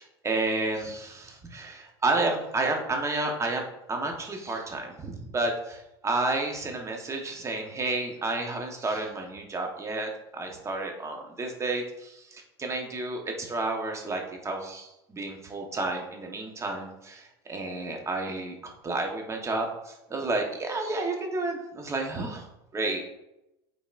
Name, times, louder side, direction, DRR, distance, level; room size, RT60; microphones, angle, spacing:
voice 1, 0.2-3.6 3.9-22.5 22.7-23.0, right 2 dB, 20° right, 2 dB, 1.2 m, -31 dB
9.1 x 4.0 x 2.6 m, 0.91 s
hypercardioid pair, 100°, 13 cm